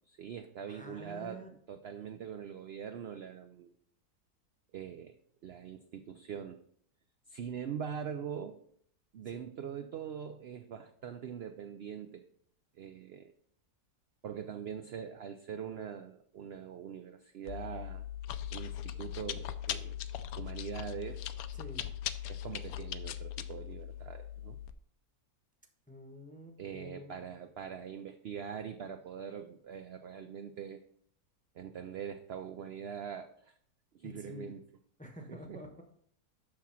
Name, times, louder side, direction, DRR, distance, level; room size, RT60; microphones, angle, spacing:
voice 1, 0.1-3.7 4.7-5.2 5.4-6.6 7.3-8.6 9.1-12.3 12.8-13.3 14.2-18.0 18.5-20.0 20.4-21.2 22.3-24.6 26.6-30.8 31.5-33.5 33.9-34.6 35.3-35.6, right 8 dB, 70° right, 7 dB, 0.5 m, -43 dB
voice 2, 0.7-1.5 9.3-9.4 21.5-21.8 25.9-27.3 34.0-34.5 35.0-35.8, left 1 dB, 5° left, 3 dB, 0.8 m, -48 dB
Chewing mastication, 17.5-24.7, left 10 dB, 75° left, 1.0 m, -40 dB
6.7 x 6.0 x 5.7 m, 0.65 s
omnidirectional pair, 1.7 m